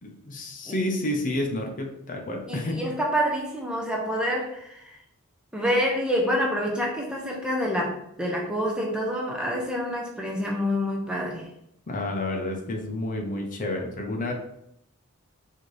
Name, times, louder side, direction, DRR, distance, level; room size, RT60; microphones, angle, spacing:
voice 1, 0.0-2.8 11.9-14.3, left 1 dB, 35° left, 2 dB, 0.6 m, -30 dB
voice 2, 2.5-5.0 5.5-11.5, equal, 5° right, -1 dB, 0.5 m, -27 dB
4.2 x 2.6 x 3.1 m, 0.77 s
head